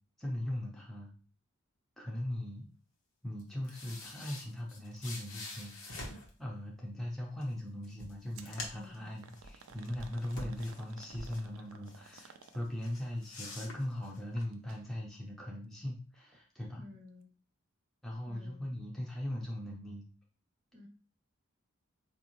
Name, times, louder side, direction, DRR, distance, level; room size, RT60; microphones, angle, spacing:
voice 1, 0.2-1.1 2.0-2.7 3.2-16.8 18.0-20.0, left 1 dB, ahead, -3 dB, 0.5 m, -39 dB
sound 1, 3.4-6.3 7.4-7.5 7.8-9.0 9.3-11.4 11.9-12.5 12.8-14.4, left 2 dB, 80° left, 0.9 m, -46 dB
sound 2, 8.3-8.6 9.2-12.9 14.5-14.8 15.2-15.3 16.1-16.2, right 6 dB, 75° right, 0.4 m, -55 dB
voice 2, 8.7-9.2 16.8-17.3 18.3-18.7 20.7-20.9, left 2 dB, 45° right, -2 dB, 0.8 m, -53 dB
4.3 x 2.6 x 2.9 m, 0.38 s
head